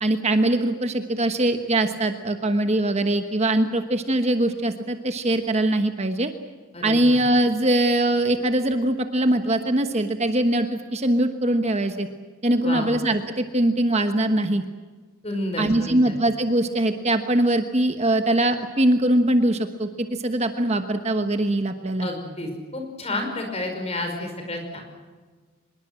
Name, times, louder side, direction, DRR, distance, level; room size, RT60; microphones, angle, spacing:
voice 1, 0.0-6.3 6.8-12.1 12.4-14.6 15.6-22.1, right 1 dB, 30° right, 7 dB, 1.2 m, -22 dB
voice 2, 6.7-7.2 12.6-12.9 15.2-16.1 22.0-24.8, left 1 dB, 30° left, 4 dB, 5.3 m, -30 dB
25.0 x 22.0 x 7.7 m, 1.4 s
head